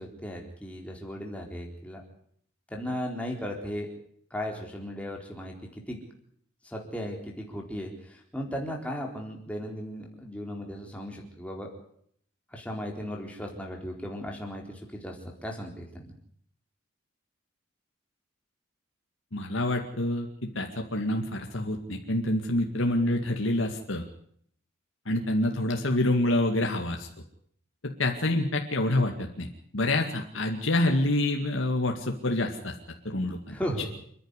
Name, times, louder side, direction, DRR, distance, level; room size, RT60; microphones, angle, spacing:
voice 1, 0.0-2.0 2.7-3.9 4.3-6.0 6.6-11.7 12.5-15.2 15.4-16.1 33.5-33.9, equal, 5° left, 0 dB, 4.1 m, -36 dB
voice 2, 19.3-20.3 20.6-24.0 25.1-27.1 27.8-29.5 29.7-32.7 33.1-33.6, left 1 dB, 80° left, 2 dB, 2.2 m, -27 dB
28.0 x 10.5 x 9.9 m, 0.66 s
head